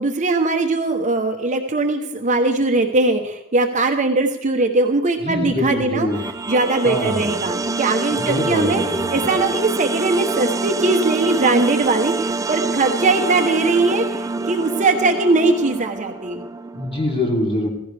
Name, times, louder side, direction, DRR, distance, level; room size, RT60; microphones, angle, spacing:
voice 1, 0.0-6.1 6.5-8.8 9.1-16.4, right 3 dB, 35° right, 4 dB, 1.0 m, -20 dB
voice 2, 5.2-6.2 6.8-7.3 8.1-9.2 16.7-17.7, left 1 dB, 25° left, -1 dB, 3.1 m, -24 dB
sound 1, 6.1-17.2, right 3 dB, 15° right, 0.4 m, -26 dB
15.5 x 15.5 x 3.4 m, 0.84 s
head